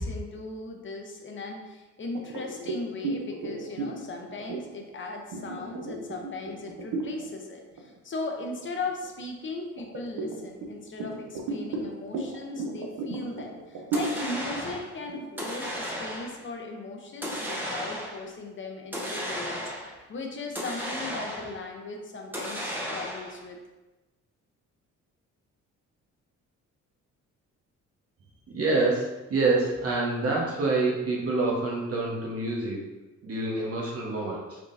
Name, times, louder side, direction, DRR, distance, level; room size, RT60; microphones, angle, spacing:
voice 1, 0.0-23.6, left 3 dB, 40° left, 2 dB, 0.8 m, -38 dB
sound 1, 2.2-7.3 7.7-8.0 8.4-9.2 9.8-16.5, right 3 dB, 80° right, 0.8 m, -35 dB
sound 2, 13.9-14.9 15.4-16.4 17.2-18.3 18.9-20.0 20.6-21.6 22.3-23.4, equal, 5° right, 1.0 m, -34 dB
voice 2, 28.5-32.8 33.2-34.6, right 3 dB, 50° right, -3 dB, 1.2 m, -27 dB
4.7 x 3.7 x 2.7 m, 1.1 s
cardioid pair, 90°, 30 cm